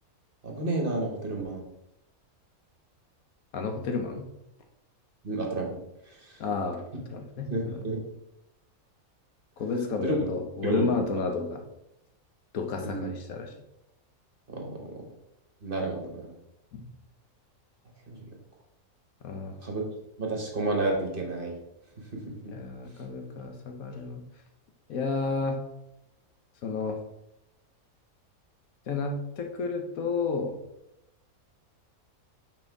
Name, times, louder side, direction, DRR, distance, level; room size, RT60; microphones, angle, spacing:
voice 1, 0.4-1.6 5.2-5.7 7.5-8.0 10.0-10.3 10.6-11.2 12.8-13.1 14.5-14.9 15.6-16.3 18.1-18.2 19.6-19.9 20.2-21.5 22.3-22.5, right 2 dB, 40° right, 0 dB, 1.4 m, -30 dB
voice 2, 3.5-4.3 6.4-6.8 7.1-7.9 9.6-11.6 12.5-13.5 16.7-16.8 19.2-19.6 22.5-24.2 24.9-25.6 26.6-27.0 28.9-30.6, left 4 dB, 75° left, 4 dB, 1.3 m, -31 dB
6.1 x 4.5 x 4.6 m, 0.86 s
omnidirectional pair, 1.5 m